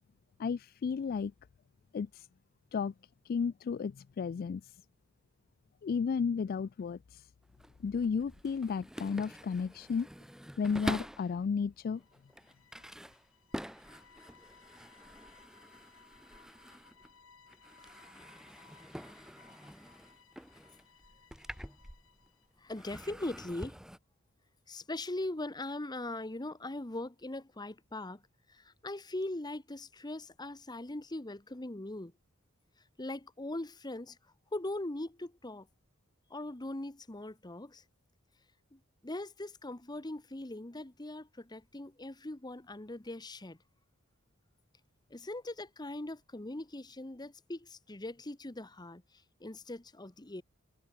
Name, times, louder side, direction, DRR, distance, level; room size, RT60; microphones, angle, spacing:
voice 1, 0.4-1.3 1.9-2.3 2.7-2.9 3.3-4.7 5.8-7.3 7.8-10.1 10.6-12.0, left 5 dB, 45° left, 0.3 m, -33 dB
sound 1, 7.4-11.4 12.0-17.2 17.5-22.3 22.7-24.0, equal, 5° right, 1.2 m, -46 dB
sound 2, 11.8-22.6, left 5 dB, 70° left, 5.8 m, -62 dB
voice 2, 22.6-23.8 24.7-32.1 33.0-34.2 34.5-35.7 36.3-37.8 38.7-43.6 45.1-50.4, left 1 dB, 20° left, 1.1 m, -41 dB
head